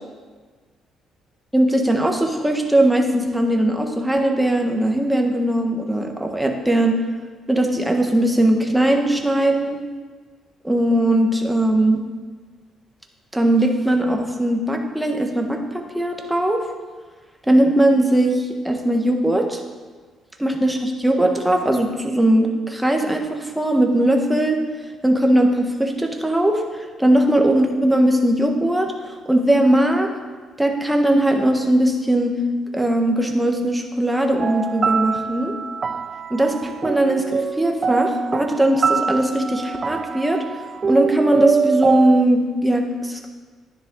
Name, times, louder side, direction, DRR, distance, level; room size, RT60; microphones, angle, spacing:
voice 1, 1.5-7.0 7.5-9.8 10.6-12.0 13.3-16.6 17.5-19.6 20.4-24.6 25.0-30.1 30.6-32.4 32.7-35.5 36.3-40.4 40.9-43.3, right 1 dB, 5° right, 2 dB, 1.4 m, -19 dB
sound 1, 34.4-42.2, right 5 dB, 35° right, 0.3 m, -24 dB
11.0 x 10.0 x 3.9 m, 1.4 s
cardioid pair, 100°, 0 cm